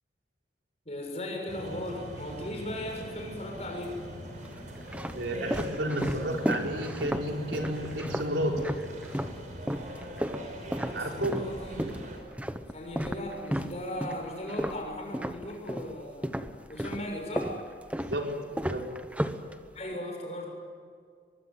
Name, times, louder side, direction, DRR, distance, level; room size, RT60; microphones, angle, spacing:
voice 1, 0.8-4.0 10.8-11.9 12.7-16.3 16.7-17.6 19.7-20.5, left 1 dB, 35° left, 1 dB, 6.9 m, -37 dB
sound 1, 1.5-12.2, equal, 45° right, 5.8 m, -42 dB
sound 2, 2.9-3.6 4.3-9.4 9.7-15.9 16.2-19.9, equal, 10° right, 1.0 m, -34 dB
voice 2, 5.1-8.7 10.9-11.3 18.0-18.8, right 1 dB, 85° right, 1 dB, 4.6 m, -31 dB
23.5 x 22.5 x 9.6 m, 2.1 s
head